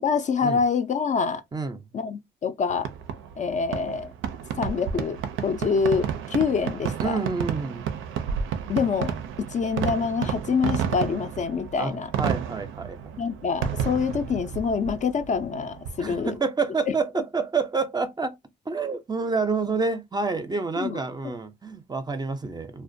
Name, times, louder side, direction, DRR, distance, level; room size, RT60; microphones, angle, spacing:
voice 1, 0.0-1.4 1.9-2.9 3.4-4.1 4.6-7.2 8.7-12.1 13.2-16.3 16.9-17.0 20.8-21.0, left 5 dB, 40° left, 0.4 m, -26 dB
voice 2, 1.5-1.8 7.0-7.9 11.8-13.0 16.0-18.4 18.7-22.8, right 4 dB, 20° right, 0.4 m, -28 dB
Fireworks, 2.8-16.4, right 8 dB, 85° right, 0.4 m, -31 dB
2.4 x 2.1 x 2.5 m
cardioid pair, 90°, 20 cm